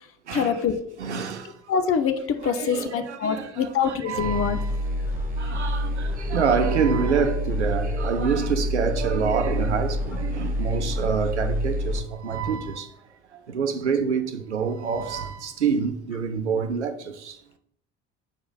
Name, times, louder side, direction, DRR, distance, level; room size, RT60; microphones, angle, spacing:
voice 1, 0.3-0.9 1.7-4.6 5.5-5.7 12.7-12.8, left 7 dB, 40° left, 0.9 m, -25 dB
voice 2, 1.0-1.5 2.4-4.8 5.4-12.9 13.5-17.3, right 6 dB, 85° right, 0.7 m, -27 dB
sound 1, 4.2-12.0, left 1 dB, 25° right, 1.8 m, -27 dB
7.0 x 4.8 x 4.0 m
figure-of-eight pair, 50°, 34 cm